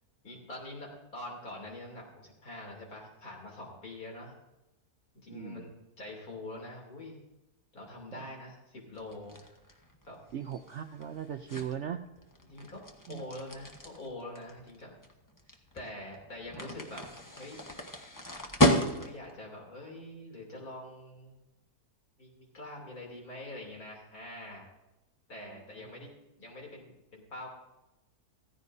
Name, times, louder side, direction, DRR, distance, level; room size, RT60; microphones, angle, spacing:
voice 1, 0.2-4.3 5.1-7.2 7.7-9.4 10.1-10.2 12.5-12.8 13.1-14.9 15.7-17.1 17.4-17.6 18.7-21.4 22.2-24.7 25.3-26.1 26.4-27.5, left 1 dB, 65° left, -1 dB, 3.6 m, -44 dB
voice 2, 5.3-5.7 8.1-8.2 10.3-12.0 13.1-13.2 25.4-25.6 26.0-26.1, right 9 dB, 65° right, 7 dB, 0.7 m, -38 dB
sound 1, 8.9-19.4, equal, 15° left, 1.0 m, -33 dB
15.5 x 15.0 x 2.7 m, 0.98 s
omnidirectional pair, 1.7 m